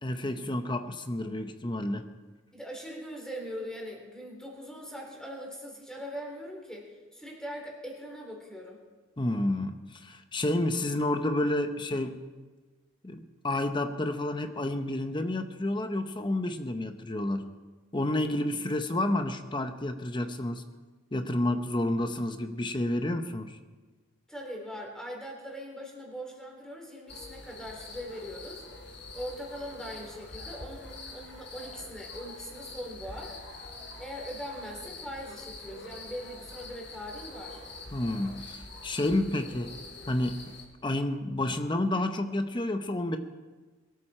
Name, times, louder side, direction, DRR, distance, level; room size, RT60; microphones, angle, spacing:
voice 1, 0.0-2.1 9.2-12.2 13.0-17.5 17.9-20.6 21.1-23.6 37.9-39.7 40.1-40.5 40.8-43.2, left 1 dB, 25° left, 7 dB, 0.8 m, -30 dB
voice 2, 2.5-8.8 24.3-28.6 29.1-33.3 34.0-37.6, equal, 5° left, -1 dB, 3.7 m, -41 dB
sound 1, 27.1-40.6, left 3 dB, 60° left, 4.0 m, -45 dB
22.5 x 13.5 x 4.4 m, 1.3 s
head